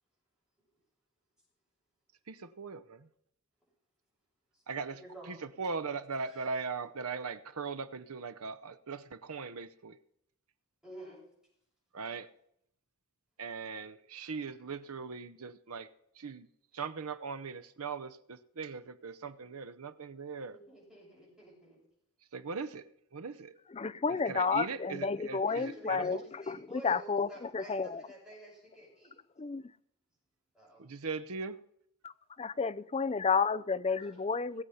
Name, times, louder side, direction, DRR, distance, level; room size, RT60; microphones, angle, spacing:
voice 1, 2.3-3.1 4.7-5.0 5.3-10.0 11.9-12.3 13.4-15.9 16.2-16.5 16.7-20.6 22.3-22.8 23.1-23.5 24.3-26.2 30.8-31.6, right 4 dB, 85° right, 0.8 m, -40 dB
voice 2, 5.0-5.4 5.9-6.7 10.8-11.2 20.5-21.8 24.4-24.9 25.4-29.1 30.5-30.8 33.9-34.2, right 1 dB, ahead, 6.6 m, -51 dB
voice 3, 23.7-28.0 29.4-29.6 32.0-32.1 32.4-34.6, left 5 dB, 25° left, 0.4 m, -31 dB
18.5 x 8.1 x 5.7 m
head